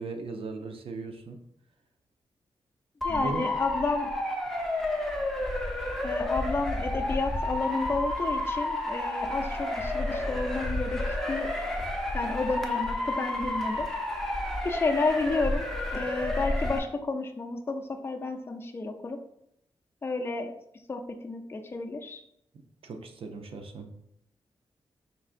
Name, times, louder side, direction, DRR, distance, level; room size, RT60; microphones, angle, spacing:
voice 1, 0.0-1.4 3.1-3.5 22.8-23.9, right 3 dB, 70° right, 5 dB, 0.5 m, -37 dB
voice 2, 3.0-4.1 6.0-11.5 12.1-13.9 14.6-15.7 15.9-19.2 20.0-20.5 20.9-22.2, left 3 dB, 25° left, 3 dB, 0.4 m, -31 dB
Motor vehicle (road) / Siren, 3.0-16.8, left 1 dB, ahead, 0.8 m, -30 dB
5.2 x 3.6 x 2.4 m, 0.76 s
wide cardioid pair, 115°, 10 cm